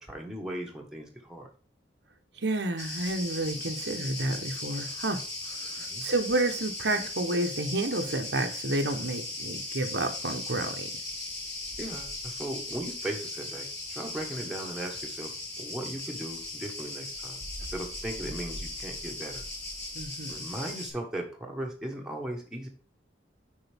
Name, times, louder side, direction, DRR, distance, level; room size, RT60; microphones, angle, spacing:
voice 1, 0.0-1.5 5.8-6.1 11.8-17.4 17.7-19.4 20.3-22.7, right 1 dB, 5° right, -1 dB, 1.5 m, -38 dB
voice 2, 2.4-5.2 5.5-10.9 19.9-20.4, right 2 dB, 70° right, 5 dB, 1.0 m, -30 dB
Cricket, 2.8-20.9, left 2 dB, 15° left, 3.9 m, -38 dB
8.2 x 5.3 x 3.5 m, 0.39 s
head